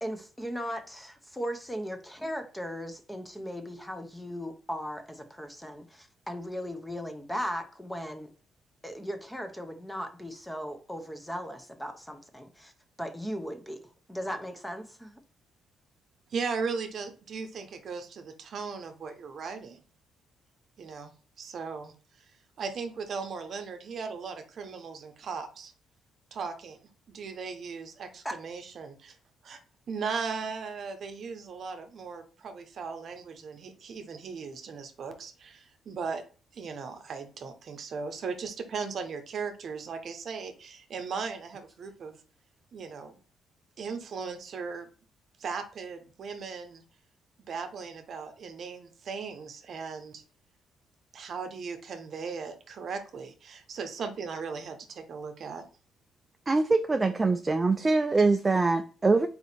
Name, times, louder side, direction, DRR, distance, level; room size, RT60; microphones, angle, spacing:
voice 1, 0.0-8.3 8.8-12.7 13.0-13.8 14.1-15.2 28.2-28.4, equal, 5° left, 0.7 m, -37 dB
voice 2, 16.3-19.8 20.8-21.1 21.4-22.3 22.6-25.7 26.3-26.8 27.1-29.2 29.4-29.6 29.9-36.2 36.5-42.2 42.7-43.2 43.8-44.9 45.4-46.8 47.5-50.2 51.1-55.6, right 5 dB, 60° right, 0.8 m, -37 dB
voice 3, 56.5-59.3, right 3 dB, 25° right, 0.3 m, -24 dB
4.2 x 2.8 x 4.1 m
cardioid pair, 90°, 0 cm